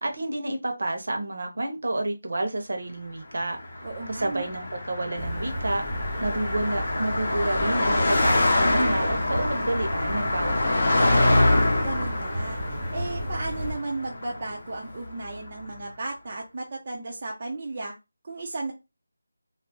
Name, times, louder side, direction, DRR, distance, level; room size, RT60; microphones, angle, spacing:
voice 1, 0.0-3.6 4.1-5.8 6.2-11.3, right 2 dB, 55° right, 0.8 m, -30 dB
Car passing by, 3.5-15.1, left 2 dB, 35° left, 0.7 m, -25 dB
voice 2, 3.8-4.5 11.5-12.6 12.9-17.9 18.2-18.7, right 2 dB, 30° right, 0.4 m, -34 dB
sound 1, 5.2-13.7, equal, ahead, 0.8 m, -33 dB
2.4 x 2.0 x 3.7 m
figure-of-eight pair, 175°, 0 cm